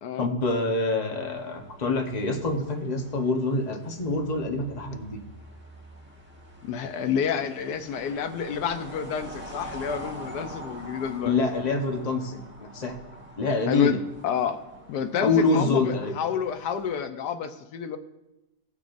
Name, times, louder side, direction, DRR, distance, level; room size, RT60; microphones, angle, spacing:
voice 1, 0.2-5.2 11.3-13.0 13.4-14.0 15.2-16.1, left 3 dB, 30° left, 2 dB, 1.0 m, -26 dB
sound 1, 1.3-17.0, right 1 dB, 5° right, 1.3 m, -45 dB
voice 2, 6.6-11.3 13.7-14.0 14.2-14.6 14.9-18.0, left 7 dB, 85° left, 8 dB, 1.3 m, -29 dB
16.5 x 6.1 x 2.6 m, 0.94 s
omnidirectional pair, 1.7 m